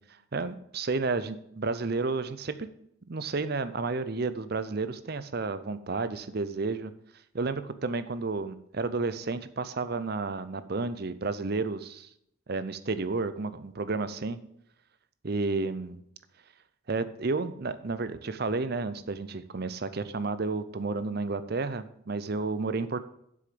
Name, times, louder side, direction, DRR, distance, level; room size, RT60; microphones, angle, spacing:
voice 1, 0.3-2.7 3.1-6.9 7.3-12.1 12.5-14.4 15.2-16.0 16.9-23.0, right 3 dB, 45° right, 13 dB, 0.6 m, -31 dB
7.8 x 6.3 x 6.9 m, 0.74 s
head